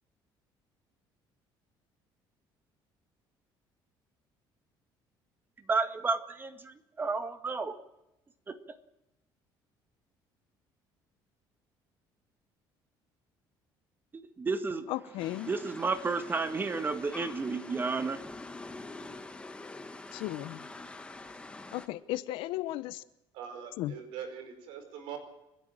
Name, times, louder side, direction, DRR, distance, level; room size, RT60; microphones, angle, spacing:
voice 1, 5.7-7.8 8.5-8.6 14.1-14.9 15.5-18.2, right 4 dB, 25° right, 1.9 m, -32 dB
voice 2, 14.9-15.5 20.1-20.7 21.7-23.0 23.8-23.9, left 15 dB, 85° left, 1.0 m, -35 dB
sound 1, 15.2-21.9, left 2 dB, 10° left, 1.5 m, -45 dB
voice 3, 23.3-25.2, right 8 dB, 85° right, 4.8 m, -42 dB
30.0 x 10.5 x 9.1 m
cardioid pair, 125°, 9 cm